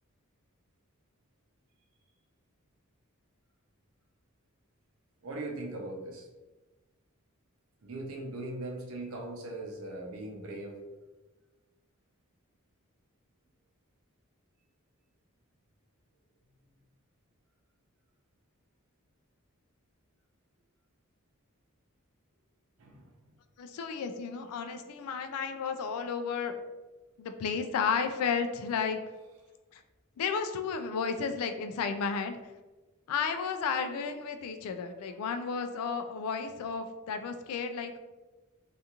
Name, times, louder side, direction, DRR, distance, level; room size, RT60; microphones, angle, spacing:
voice 1, 5.2-6.3 7.8-10.9 22.8-23.0, right 2 dB, 70° right, 0 dB, 0.6 m, -39 dB
voice 2, 23.6-26.5 27.2-29.0 29.7-29.8 30.2-32.4 33.1-38.0, left 6 dB, 85° left, 8 dB, 0.3 m, -33 dB
2.9 x 2.4 x 2.3 m, 1.2 s
head